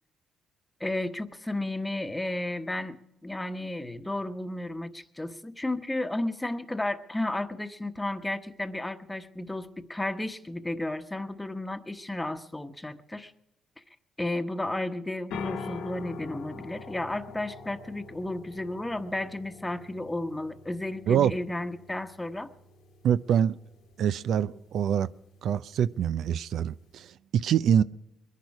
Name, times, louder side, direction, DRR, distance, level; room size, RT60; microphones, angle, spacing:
voice 1, 0.8-3.0 3.2-13.3 14.2-22.5, left 1 dB, 10° left, 1.1 m, -33 dB
sound 1, 15.3-27.1, left 4 dB, 85° left, 1.5 m, -45 dB
voice 2, 23.0-23.6 24.0-25.1 25.4-27.8, right 9 dB, 70° right, 0.4 m, -25 dB
22.0 x 10.5 x 4.7 m
cardioid pair, 90°, 0 cm